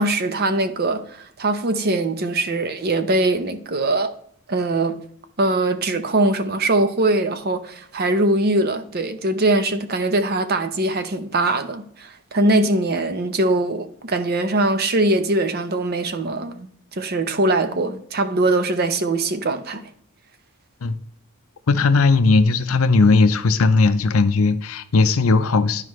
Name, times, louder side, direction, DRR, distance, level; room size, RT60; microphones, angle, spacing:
voice 1, 0.0-4.1 4.5-5.0 5.4-19.8, right 2 dB, 45° right, 0.7 m, -22 dB
voice 2, 21.7-25.8, left 3 dB, 70° left, 0.6 m, -17 dB
11.0 x 4.9 x 3.2 m
head